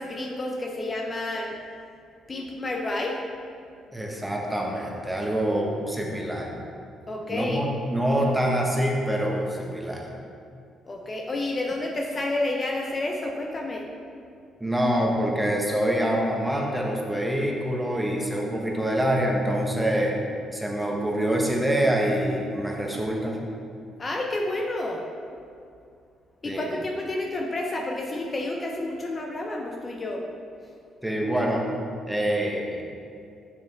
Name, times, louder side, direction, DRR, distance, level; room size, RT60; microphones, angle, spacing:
voice 1, 0.0-1.5 2.3-3.2 7.1-7.6 10.8-13.8 24.0-25.0 26.4-30.2, left 2 dB, 30° left, 0 dB, 0.7 m, -30 dB
voice 2, 3.9-6.5 7.3-10.1 14.6-20.1 20.5-23.4 26.4-26.7 31.0-31.6 32.1-32.8, right 1 dB, 10° right, -1 dB, 1.1 m, -25 dB
6.8 x 6.3 x 3.4 m, 2.4 s
cardioid pair, 90°, 0 cm